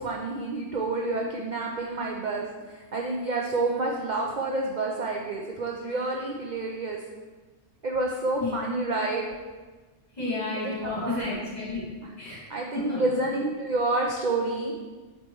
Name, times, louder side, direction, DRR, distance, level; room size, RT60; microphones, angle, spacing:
voice 1, 0.0-7.0 7.8-9.3 10.6-11.2 12.0-12.1 12.5-14.7, right 2 dB, 50° right, 0 dB, 0.6 m, -29 dB
voice 2, 10.2-11.8 12.2-12.4 12.7-13.2, left 2 dB, 35° left, -6 dB, 2.0 m, -31 dB
7.8 x 3.1 x 4.6 m, 1.3 s
omnidirectional pair, 1.3 m